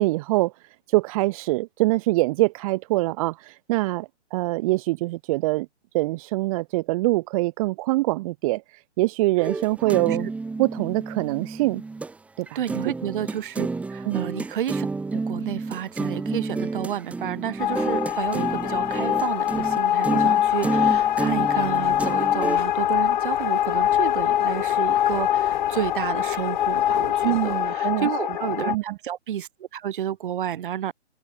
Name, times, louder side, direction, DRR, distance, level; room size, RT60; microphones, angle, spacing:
voice 1, 0.0-5.7 5.9-10.3 10.6-11.8 12.4-12.6 14.0-14.3 27.2-28.1 28.7-28.8, right 20 dB, 30° right, 4.9 m, -24 dB
sound 1, 9.4-12.1 12.5-22.6, right 3 dB, 5° right, 1.7 m, -30 dB
voice 2, 9.8-10.2 12.5-14.9 15.1-30.9, right 10 dB, 45° right, 7.7 m, -31 dB
sound 2, 17.6-28.8, left 12 dB, 40° left, 2.2 m, -23 dB
hypercardioid pair, 145°, 36 cm